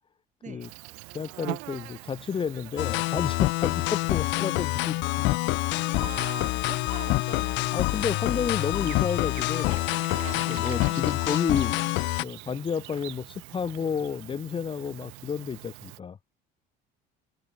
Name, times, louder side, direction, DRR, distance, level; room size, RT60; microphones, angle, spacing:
Insect, 0.6-16.0, right 32 dB, 85° right, 2.0 m, -44 dB
voice 1, 1.1-5.4 5.8-6.1 7.7-9.9 10.3-11.8 12.2-16.2, left 6 dB, 25° left, 0.6 m, -31 dB
sound 1, 2.8-12.2, left 22 dB, 65° left, 0.4 m, -27 dB
voice 2, 5.7-7.9 10.6-11.2, right 8 dB, 40° right, 2.5 m, -42 dB
sound 2, 8.5-13.5, right 18 dB, 65° right, 1.2 m, -47 dB
open air
supercardioid pair, 95°, 20 cm